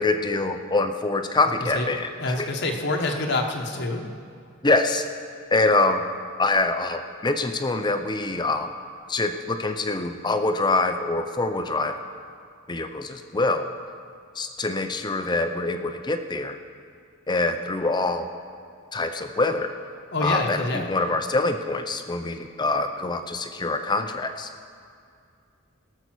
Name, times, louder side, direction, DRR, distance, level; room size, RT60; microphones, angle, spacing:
voice 1, 0.0-2.5 4.6-5.0 5.5-6.0 6.4-8.7 9.1-12.0 12.7-13.6 14.4-16.6 17.3-18.3 18.9-19.7 20.2-24.5, left 2 dB, 20° left, 7 dB, 0.6 m, -25 dB
voice 2, 2.2-4.0 20.1-20.9, left 2 dB, 55° left, 2 dB, 1.1 m, -26 dB
18.0 x 6.8 x 6.1 m, 2.3 s
head